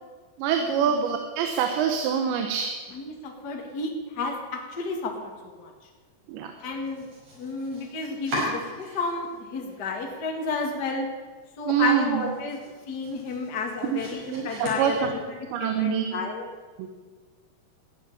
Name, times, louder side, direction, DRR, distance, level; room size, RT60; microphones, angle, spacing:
voice 1, 0.4-2.7 6.3-6.5 11.7-12.3 13.8-14.0 14.3-16.2 16.8-16.9, right 8 dB, 80° right, 5 dB, 3.3 m, -25 dB
voice 2, 3.0-5.3 5.6-5.7 6.6-7.1 7.4-11.1 11.6-12.6 12.9-15.1 15.6-16.4, left 3 dB, 40° left, 2 dB, 1.5 m, -31 dB
Domestic sounds home sounds, 6.8-9.4 9.7-10.4 10.8-10.9 11.3-11.4 11.8-15.5, equal, 50° right, 7.3 m, -38 dB
14.5 x 9.4 x 10.0 m, 1.4 s
omnidirectional pair, 5.1 m